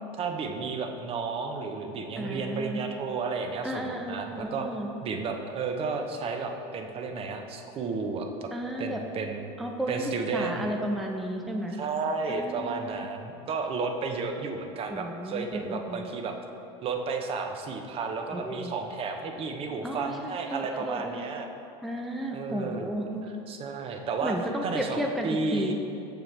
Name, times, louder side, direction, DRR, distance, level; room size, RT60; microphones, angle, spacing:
voice 1, 0.2-4.7 5.0-8.5 8.8-9.5 9.9-10.7 11.7-16.3 16.8-21.5 22.3-22.9 23.2-25.0 25.2-25.7, right 4 dB, 40° right, 4 dB, 0.7 m, -32 dB
voice 2, 2.2-2.8 3.6-4.9 8.5-9.0 9.6-11.8 12.3-13.1 14.9-16.1 18.3-18.7 19.8-21.3 21.8-23.2 24.2-25.7, right 1 dB, ahead, 1 dB, 0.4 m, -33 dB
6.8 x 5.8 x 3.3 m, 2.7 s
supercardioid pair, 105°, 15 cm